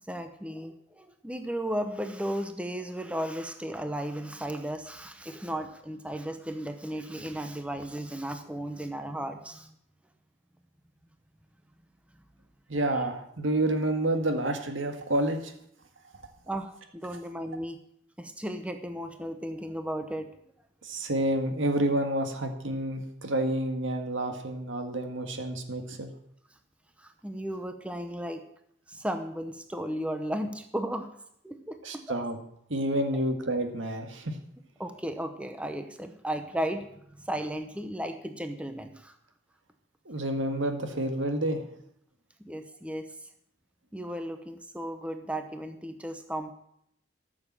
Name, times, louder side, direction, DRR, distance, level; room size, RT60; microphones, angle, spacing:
voice 1, 0.1-9.7 16.5-17.8 18.2-20.3 27.0-28.4 28.9-31.1 31.4-32.2 34.8-36.9 37.2-39.2 42.4-43.1 43.9-46.5, right 1 dB, 5° right, 7 dB, 0.8 m, -35 dB
voice 2, 12.7-15.5 20.8-26.1 31.8-32.4 32.7-34.4 40.0-41.7, right 1 dB, 80° right, 5 dB, 1.8 m, -29 dB
13.5 x 7.2 x 7.4 m, 0.73 s
head